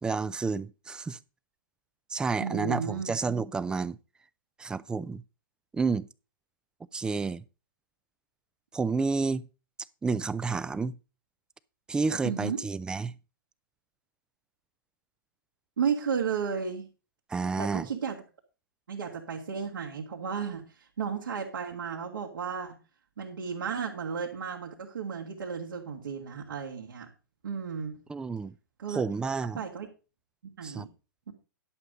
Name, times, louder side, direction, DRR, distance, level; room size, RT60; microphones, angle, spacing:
voice 1, 0.0-1.2 2.1-4.0 4.6-5.2 5.7-6.1 6.9-7.4 8.7-9.5 10.0-11.0 11.9-13.1 17.3-17.9 28.1-28.5 28.9-29.6 30.6-30.9, right 4 dB, 5° right, 0.4 m, -30 dB
voice 2, 2.4-3.1 12.2-12.6 15.8-16.9 17.6-18.2 18.9-22.8 23.2-27.1 27.4-28.0 28.8-29.0 29.6-29.9 30.4-30.9 31.3-31.4, right 6 dB, 70° right, 2.5 m, -33 dB
11.5 x 6.8 x 5.1 m
figure-of-eight pair, 120°, 11 cm